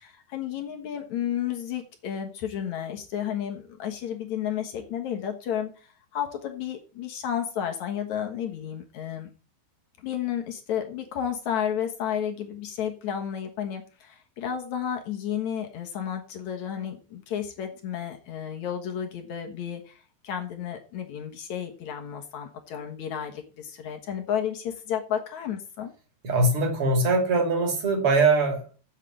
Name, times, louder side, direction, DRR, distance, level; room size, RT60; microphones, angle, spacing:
voice 1, 0.0-9.3 10.0-25.9, left 9 dB, 65° left, 4 dB, 1.9 m, -32 dB
voice 2, 26.2-28.7, right 3 dB, 35° right, 5 dB, 2.7 m, -22 dB
8.3 x 7.5 x 7.4 m, 0.37 s
omnidirectional pair, 5.1 m